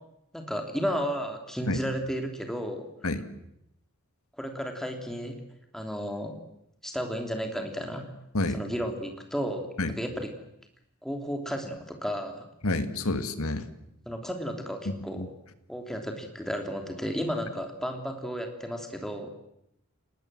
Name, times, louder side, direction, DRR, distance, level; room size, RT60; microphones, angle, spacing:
voice 1, 0.3-2.9 4.4-5.4 5.7-6.4 6.8-8.1 8.5-9.7 9.9-10.3 11.0-12.5 14.1-15.2 15.7-19.3, equal, ahead, 4 dB, 3.1 m, -33 dB
voice 2, 12.6-13.7 15.2-15.3, left 2 dB, 75° left, 10 dB, 2.0 m, -28 dB
30.0 x 19.0 x 7.7 m, 0.81 s
head